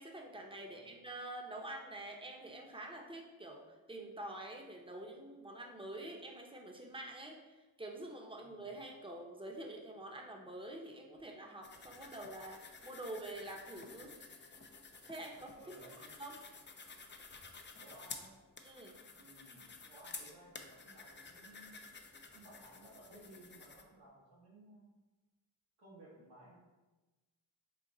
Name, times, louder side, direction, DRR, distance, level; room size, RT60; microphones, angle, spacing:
voice 1, 0.0-14.5 15.1-15.6 16.2-16.4 18.6-19.0, right 1 dB, 10° right, 1 dB, 0.8 m, -47 dB
sound 1, 11.6-23.8, left 4 dB, 25° left, 0.5 m, -52 dB
voice 2, 15.5-16.2 17.8-18.3 19.1-21.8 22.3-24.9 25.8-26.6, right 1 dB, 75° right, -10 dB, 1.3 m, -58 dB
3.9 x 2.5 x 3.9 m, 1.2 s
cardioid pair, 50°, 48 cm